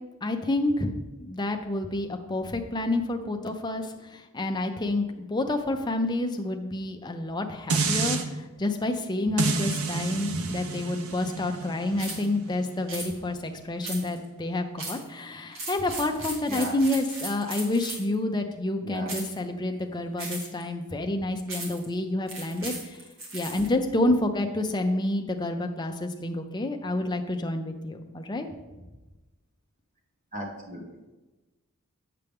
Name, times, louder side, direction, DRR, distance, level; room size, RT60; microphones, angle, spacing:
voice 1, 0.2-23.0 23.3-28.5, left 2 dB, 20° left, 5 dB, 0.5 m, -29 dB
sound 1, 7.7-8.2 9.4-14.5 15.0-15.1, right 4 dB, 80° right, 0.7 m, -30 dB
sound 2, 12.0-12.3 12.9-13.1 13.8-14.3 14.8-15.1 15.5-18.1 19.1-19.4 20.2-20.6 21.5-21.9 22.3-23.7, right 2 dB, 60° right, 1.7 m, -37 dB
voice 2, 16.5-16.8 18.8-19.1 30.3-30.8, right 1 dB, 35° right, 0 dB, 1.4 m, -36 dB
7.9 x 6.7 x 3.6 m, 1.1 s
head